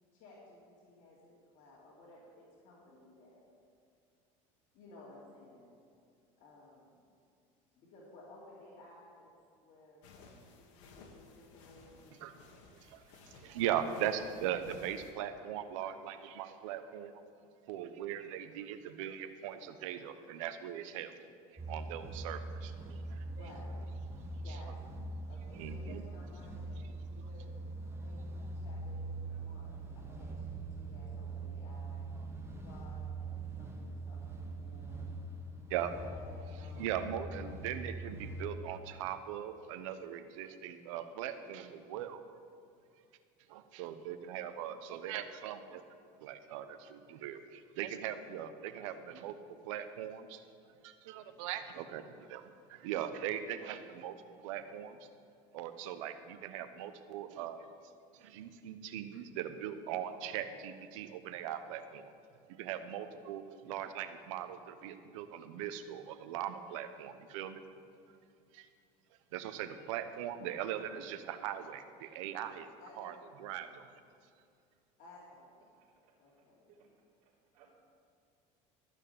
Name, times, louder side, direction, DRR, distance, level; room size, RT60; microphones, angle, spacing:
voice 1, 0.0-3.5 4.7-5.8 6.4-7.0 7.8-9.3 9.6-12.3 23.2-23.9 24.4-27.6 28.0-32.1 32.6-35.1 35.9-36.9 72.8-73.1 73.5-73.6 75.0-75.8 76.2-76.7, left 2 dB, 60° left, -7 dB, 3.1 m, -57 dB
sound 1, 10.0-15.1, left 3 dB, 85° left, 1.8 m, -58 dB
voice 2, 12.7-17.2 17.7-21.1 21.5-23.2 25.5-26.0 26.8-26.9 27.2-27.3 35.7-35.9 36.8-42.2 43.5-45.8 46.2-49.3 49.6-50.4 50.8-54.2 54.4-55.1 55.5-57.7 58.1-62.1 62.6-67.6 68.5-68.7 69.3-72.7 73.0-73.1 73.4-73.9, right 10 dB, 90° right, 10 dB, 0.9 m, -40 dB
sound 2, 21.6-38.5, right 2 dB, 15° right, 1.6 m, -43 dB
voice 3, 75.8-76.1 76.7-76.9 77.2-77.7, right 7 dB, 60° right, -7 dB, 3.5 m, -66 dB
13.5 x 6.4 x 8.5 m, 2.4 s
supercardioid pair, 110°, 16 cm